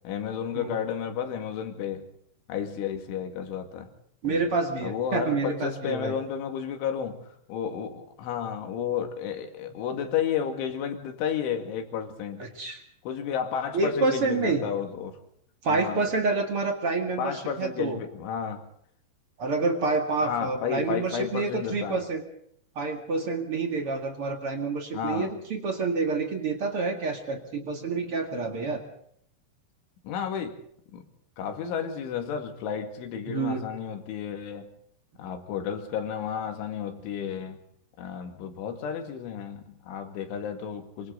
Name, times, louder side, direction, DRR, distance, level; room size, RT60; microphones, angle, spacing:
voice 1, 0.0-2.1 2.5-3.9 4.2-4.4 4.8-7.2 7.5-12.5 13.0-15.2 15.7-16.0 17.2-18.6 20.2-22.0 24.9-25.3 30.0-30.6 30.9-31.1 31.4-34.7 35.2-37.6 38.0-41.1, left 8 dB, 75° left, 4.5 m, -32 dB
voice 2, 4.2-6.1 12.4-12.8 13.7-14.6 15.6-18.0 19.4-22.2 22.7-28.8 33.3-33.6, right 3 dB, 50° right, 1.7 m, -28 dB
26.0 x 25.5 x 4.0 m
omnidirectional pair, 5.7 m